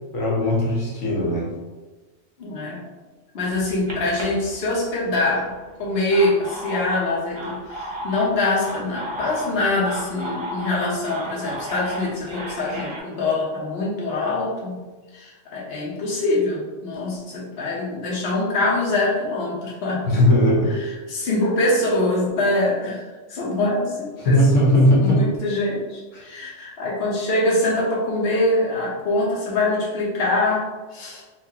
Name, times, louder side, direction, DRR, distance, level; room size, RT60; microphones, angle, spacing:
voice 1, 0.1-1.5 20.0-20.8 24.2-25.3 26.1-26.2, left 1 dB, 80° left, -4 dB, 1.2 m, -18 dB
voice 2, 2.4-2.8 3.3-5.5 5.8-14.8 15.1-20.0 20.7-24.6 25.0-30.7 30.9-31.2, left 2 dB, 60° left, -5 dB, 1.1 m, -24 dB
sound 1, 3.5-5.1 5.8-13.0, right 1 dB, 30° right, 0.6 m, -34 dB
4.4 x 2.5 x 2.8 m, 1.2 s
omnidirectional pair, 1.3 m